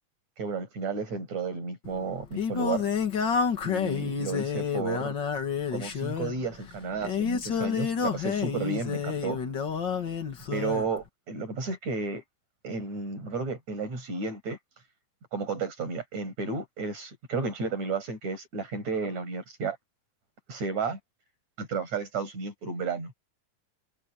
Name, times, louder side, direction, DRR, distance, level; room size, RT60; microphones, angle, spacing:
voice 1, 0.4-2.9 3.6-5.2 5.7-9.4 10.5-12.2 12.6-14.6 15.3-19.8 20.5-21.0 21.6-23.1, right 4 dB, 50° right, 7.2 m, -32 dB
Singing, 1.8-10.9, left 6 dB, 40° left, 2.1 m, -29 dB
omnidirectional pair, 4.1 m